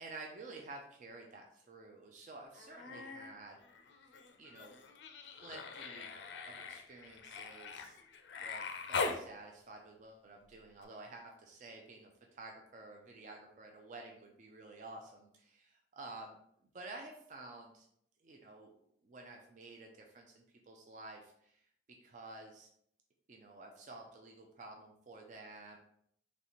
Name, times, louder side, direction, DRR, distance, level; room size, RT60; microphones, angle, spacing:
voice 1, 0.0-3.6 4.4-4.7 5.2-6.1 6.5-8.0 8.4-16.4 16.7-17.9 18.2-18.7 19.0-21.6 22.0-22.7 23.3-25.8, right 2 dB, 40° right, 1 dB, 0.4 m, -51 dB
Human voice, 2.5-3.3 3.6-9.2 10.8-10.9, left 4 dB, 65° left, 0.5 m, -42 dB
4.1 x 3.2 x 2.9 m, 0.69 s
head